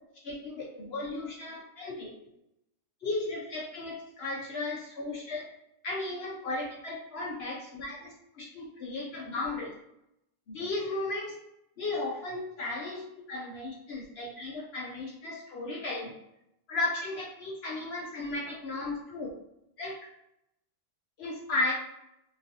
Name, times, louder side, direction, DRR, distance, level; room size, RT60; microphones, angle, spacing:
voice 1, 0.2-2.1 3.0-5.5 5.8-9.7 10.5-11.3 11.8-13.0 13.3-16.1 16.7-19.3 19.8-20.0 21.2-21.7, left 2 dB, 60° left, -3 dB, 0.7 m, -35 dB
2.9 x 2.5 x 2.7 m, 0.82 s
omnidirectional pair, 1.5 m